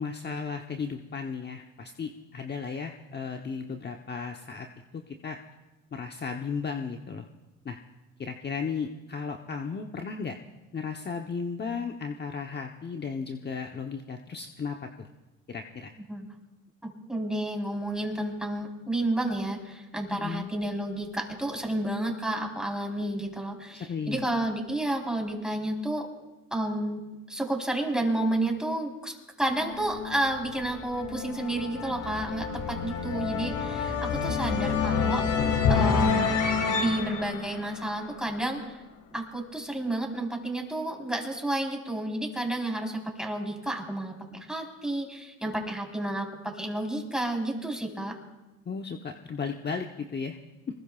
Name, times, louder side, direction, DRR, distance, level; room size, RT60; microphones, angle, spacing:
voice 1, 0.0-4.7 4.9-5.4 5.9-7.3 7.6-7.8 8.2-10.4 10.7-15.1 15.5-15.9 20.1-20.5 23.7-24.2 48.7-50.4, left 5 dB, 35° left, 3 dB, 1.0 m, -35 dB
voice 2, 16.8-26.1 26.5-35.3 35.7-36.3 36.7-38.8 39.1-48.2, right 1 dB, ahead, 0 dB, 4.0 m, -31 dB
sound 1, 29.5-38.5, left 5 dB, 75° left, 2.0 m, -28 dB
24.5 x 20.5 x 2.4 m, 1.1 s
supercardioid pair, 80°, 31 cm